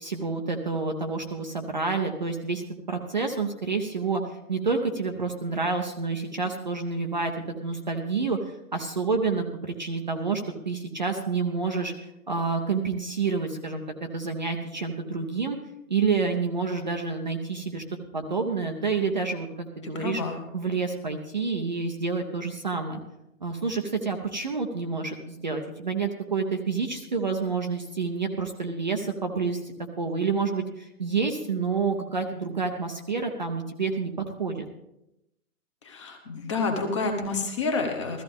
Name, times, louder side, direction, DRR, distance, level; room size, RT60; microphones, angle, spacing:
voice 1, 0.0-7.3 7.6-11.9 12.3-15.6 15.9-17.8 18.1-20.2 20.5-23.0 23.4-34.7, right 4 dB, 30° right, 3 dB, 0.6 m, -28 dB
voice 2, 19.8-20.4 35.8-38.2, left 3 dB, 20° left, 3 dB, 1.1 m, -29 dB
15.0 x 14.0 x 3.5 m, 0.87 s
hypercardioid pair, 170°, 45 cm